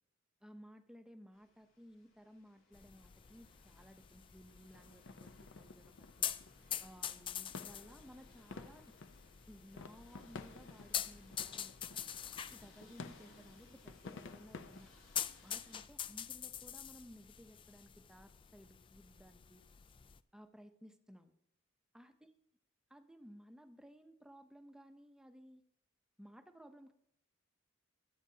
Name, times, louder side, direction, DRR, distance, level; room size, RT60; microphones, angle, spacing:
voice 1, 0.4-6.3 6.8-9.0 9.5-12.1 12.5-14.9 15.4-19.6 20.3-21.3 21.9-22.3 22.9-25.6 26.2-26.9, equal, 5° right, 7 dB, 0.7 m, -58 dB
sound 1, 1.3-15.8, left 2 dB, 90° left, 3.3 m, -67 dB
sound 2, 2.7-20.2, left 9 dB, 25° left, 0.3 m, -46 dB
sound 3, 4.7-14.8, left 3 dB, 65° left, 0.6 m, -53 dB
22.5 x 8.6 x 2.8 m, 0.77 s
head